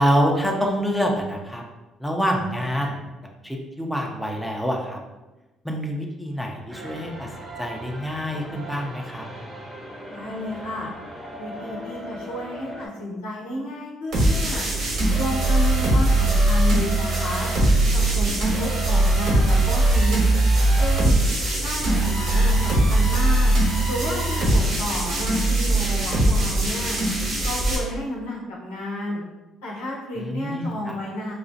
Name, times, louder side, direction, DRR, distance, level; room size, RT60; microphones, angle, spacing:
voice 1, 0.0-1.6 2.0-3.0 3.4-5.0 5.6-7.3 7.6-9.2 30.2-31.0, equal, 5° left, 0 dB, 0.6 m, -26 dB
sound 1, 6.7-12.9, equal, 25° right, 0.8 m, -38 dB
voice 2, 10.1-10.9 11.4-14.7 15.1-17.5 17.9-20.2 20.8-21.2 21.6-23.5 23.9-27.0 27.4-29.2 29.6-31.3, left 1 dB, 90° left, -5 dB, 0.8 m, -31 dB
sound 2, 14.1-27.8, right 1 dB, 70° right, 1.3 m, -20 dB
4.0 x 2.3 x 2.6 m, 1.1 s
supercardioid pair, 60°, 0 cm